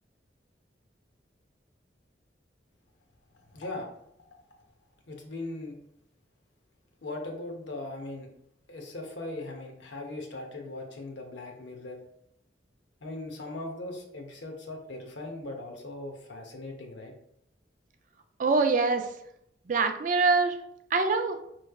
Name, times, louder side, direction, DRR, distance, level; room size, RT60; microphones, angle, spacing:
voice 1, 3.5-3.9 5.1-5.8 7.0-8.3 8.7-12.0 13.0-17.1, left 2 dB, 75° left, 2 dB, 0.8 m, -39 dB
voice 2, 18.4-19.1 19.7-20.6 20.9-21.4, right 4 dB, 45° right, 7 dB, 0.4 m, -24 dB
4.6 x 3.1 x 2.3 m, 0.73 s
head